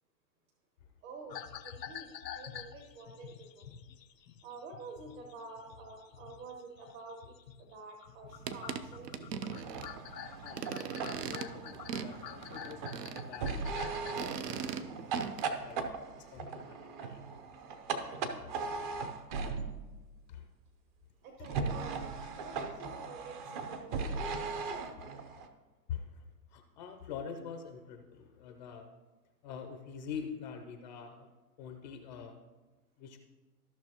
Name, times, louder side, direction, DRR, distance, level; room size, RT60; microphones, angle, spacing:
voice 1, 1.0-1.4 1.6-2.1 2.3-3.7 4.4-9.3 21.2-24.3, right 3 dB, 55° right, 1 dB, 1.4 m, -49 dB
sound 1, 1.3-7.7 8.0-14.3, left 9 dB, 80° left, 0.7 m, -48 dB
sound 2, 8.3-15.4, right 7 dB, 75° right, 0.7 m, -41 dB
sound 3, 9.6-19.9 21.4-25.5, right 4 dB, 30° right, 0.7 m, -39 dB
voice 2, 10.4-10.7 11.0-15.8 16.2-17.2 18.4-18.5 20.3-20.5 21.4-21.5 22.2-22.3 22.6-22.7 24.8-25.2 25.9-26.2 26.5-28.9 29.4-31.3 31.6-32.4 33.0-33.2, left 7 dB, 30° left, 5 dB, 0.5 m, -46 dB
14.0 x 5.9 x 2.9 m, 1.2 s
hypercardioid pair, 120°, 49 cm